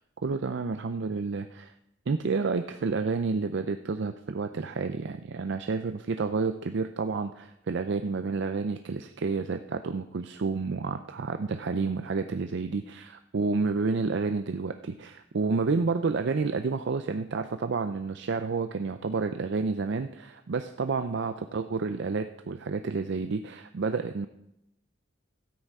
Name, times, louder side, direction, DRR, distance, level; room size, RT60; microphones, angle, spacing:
voice 1, 0.2-1.7 2.1-24.3, right 4 dB, 65° right, 8 dB, 0.5 m, -30 dB
13.5 x 9.0 x 4.8 m, 0.83 s
head